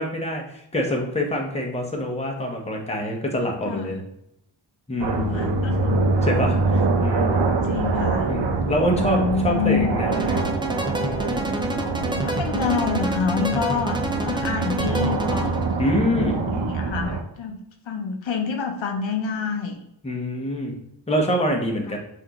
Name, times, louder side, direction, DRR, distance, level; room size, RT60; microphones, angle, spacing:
voice 1, 0.0-4.0 4.9-5.5 6.2-7.5 8.3-10.4 15.8-16.4 20.0-20.7 21.1-22.0, equal, 15° left, 0 dB, 0.9 m, -25 dB
sound 1, 5.0-17.2, right 3 dB, 65° right, 0.7 m, -24 dB
voice 2, 5.2-6.0 7.6-8.3 9.0-9.9 12.2-14.0 14.2-15.6 16.5-17.6 17.9-19.8 21.9-22.0, left 6 dB, 70° left, 4 dB, 0.7 m, -27 dB
sound 2, 10.1-15.8, right 1 dB, 10° right, 0.4 m, -29 dB
5.8 x 2.7 x 2.9 m, 0.79 s
wide cardioid pair, 100°, 47 cm